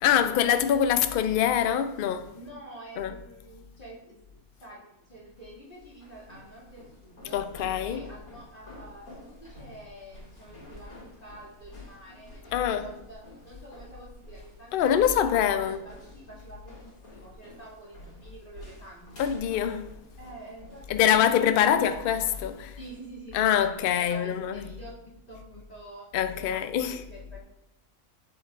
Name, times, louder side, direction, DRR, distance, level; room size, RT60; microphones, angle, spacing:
voice 1, 0.0-2.3 3.0-3.1 7.3-8.0 12.5-12.8 14.7-15.8 19.2-19.9 20.9-22.8 23.3-24.6 26.1-27.0, left 9 dB, 65° left, 0.5 m, -24 dB
voice 2, 2.3-7.4 7.8-19.2 20.2-21.6 22.8-27.4, right 1 dB, 40° left, 2.5 m, -47 dB
sound 1, 5.3-24.5, left 1 dB, 85° left, 3.2 m, -50 dB
8.3 x 7.1 x 2.4 m
omnidirectional pair, 1.5 m